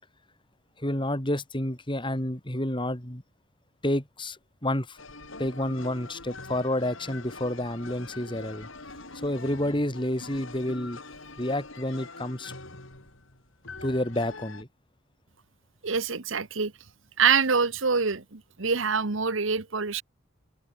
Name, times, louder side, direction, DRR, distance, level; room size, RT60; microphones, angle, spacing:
voice 1, 0.8-3.2 3.8-5.0 5.4-8.7 9.1-11.0 11.4-12.5 13.8-14.7, left 1 dB, 25° left, 3.8 m, -29 dB
sound 1, 5.0-14.6, left 3 dB, 65° left, 5.8 m, -44 dB
voice 2, 15.8-16.7 17.2-20.0, right 5 dB, 60° right, 1.2 m, -25 dB
head